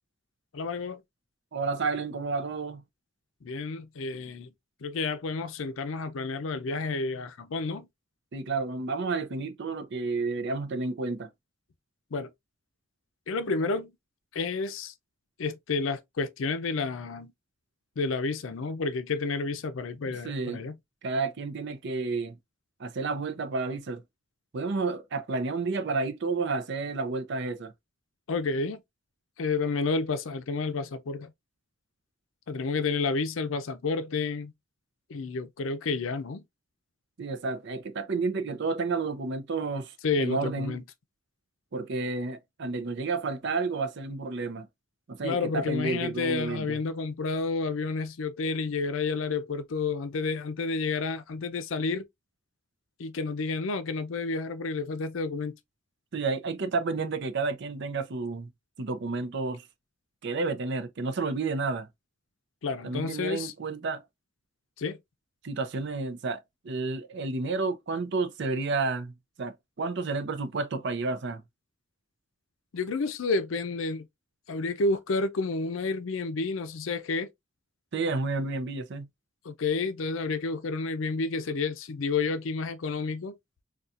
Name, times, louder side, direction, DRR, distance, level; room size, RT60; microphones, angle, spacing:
voice 1, 0.5-1.0 3.4-4.5 4.8-7.9 12.1-12.3 13.3-13.9 14.3-14.9 15.4-17.3 18.0-20.8 28.3-28.8 29.4-31.3 32.5-34.5 35.1-36.4 40.0-40.8 45.2-52.1 53.0-55.5 62.6-63.5 64.8-65.0 72.7-74.1 74.5-77.3 79.4-83.4, left 4 dB, 75° left, 0.5 m, -30 dB
voice 2, 1.5-2.8 8.3-11.3 20.1-20.6 21.0-22.4 22.8-24.0 24.5-27.7 37.2-40.8 41.7-44.7 45.1-46.8 56.1-58.5 58.8-59.7 60.2-61.9 62.8-64.0 65.4-71.4 77.9-79.1, right 3 dB, 60° right, 0.6 m, -31 dB
4.1 x 2.3 x 2.4 m
head